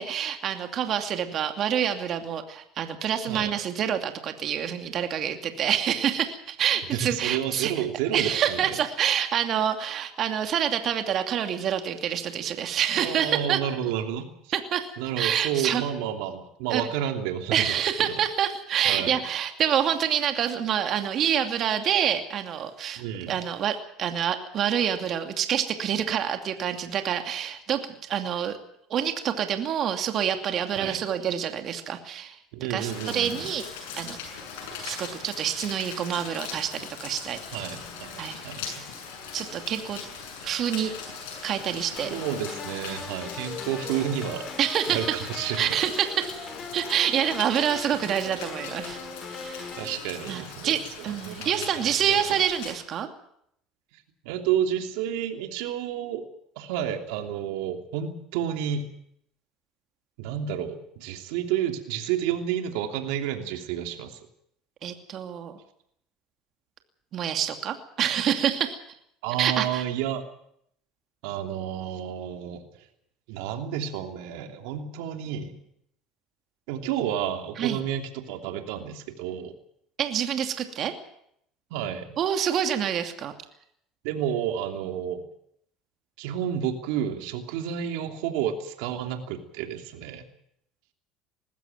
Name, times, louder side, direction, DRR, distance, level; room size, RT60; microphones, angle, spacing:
voice 1, 0.0-7.8 8.1-13.6 14.5-15.8 16.7-16.9 17.5-28.6 28.9-32.4 32.7-33.7 34.0-34.2 34.8-37.7 38.2-38.4 39.3-40.0 40.4-40.9 41.4-42.1 44.6-45.3 45.6-49.0 49.3-49.8 50.3-53.1 64.8-65.5 67.1-68.8 69.4-69.8 77.6-77.8 80.0-80.9 82.2-83.3, right 9 dB, 50° right, 6 dB, 2.6 m, -27 dB
voice 2, 6.9-8.8 13.0-14.3 15.0-17.6 18.1-18.2 18.8-19.2 23.0-23.3 30.8-31.0 32.5-33.5 37.5-38.8 42.1-44.5 44.9-45.8 49.8-50.7 51.0-52.3 54.2-56.2 56.6-58.8 60.2-64.2 69.2-70.2 71.2-72.6 73.3-75.6 76.7-79.5 81.7-82.2 84.0-85.2 86.2-90.2, right 9 dB, 80° right, 5 dB, 3.0 m, -30 dB
Rain, 32.8-52.7, left 5 dB, 90° left, 7.3 m, -40 dB
sound 1, 42.0-50.0, left 5 dB, 35° left, 3.8 m, -40 dB
20.5 x 15.5 x 9.2 m, 0.72 s
supercardioid pair, 100°, 0 cm